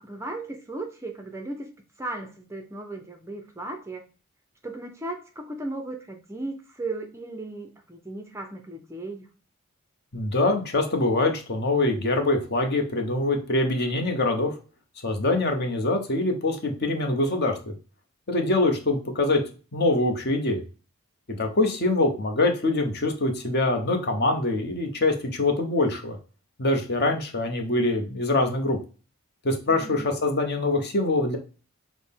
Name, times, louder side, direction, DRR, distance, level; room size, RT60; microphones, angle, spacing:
voice 1, 0.0-1.7 2.0-4.0 4.6-9.3 29.7-30.1, right 2 dB, 10° right, 4 dB, 0.4 m, -36 dB
voice 2, 10.1-14.6 15.0-17.7 18.3-19.4 19.7-20.6 21.3-26.2 26.6-28.8 29.4-31.4, left 2 dB, 45° left, 4 dB, 0.8 m, -24 dB
6.0 x 2.0 x 3.5 m, 0.35 s
head